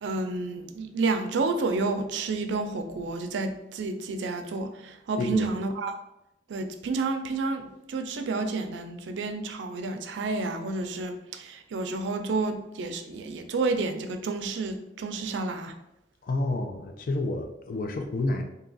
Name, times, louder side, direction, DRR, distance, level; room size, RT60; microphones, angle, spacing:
voice 1, 0.0-6.0 6.5-15.7, right 3 dB, 90° right, 0.4 m, -30 dB
voice 2, 5.2-5.5 16.2-18.4, left 2 dB, 50° left, 0.4 m, -29 dB
2.8 x 2.3 x 3.8 m
head